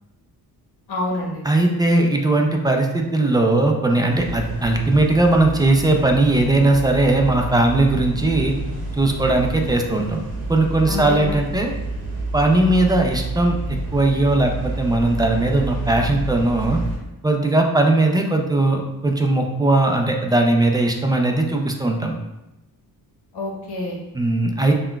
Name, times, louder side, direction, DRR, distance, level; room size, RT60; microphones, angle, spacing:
voice 1, 0.9-1.4 10.9-11.4 23.3-24.0, left 2 dB, 75° left, -1 dB, 1.0 m, -27 dB
voice 2, 1.4-8.5 8.9-10.2 10.5-11.7 12.3-13.6 13.9-16.8 17.2-22.1 24.1-24.7, right 2 dB, 10° right, 2 dB, 0.3 m, -19 dB
sound 1, 4.1-17.0, right 2 dB, 75° right, 0.9 m, -29 dB
5.7 x 2.2 x 2.3 m, 0.96 s
cardioid pair, 100°, 40 cm